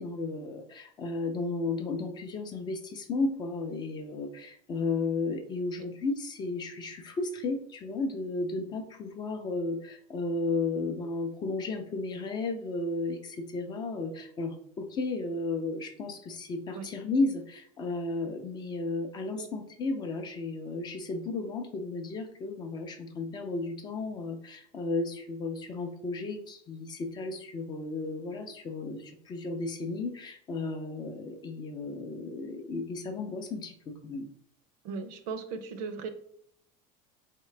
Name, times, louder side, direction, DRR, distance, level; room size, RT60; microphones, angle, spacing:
voice 1, 0.0-34.3, left 3 dB, 25° left, 5 dB, 0.5 m, -34 dB
voice 2, 34.8-36.1, right 5 dB, 55° right, 9 dB, 0.6 m, -37 dB
4.0 x 3.7 x 3.2 m, 0.65 s
cardioid pair, 165°, 17 cm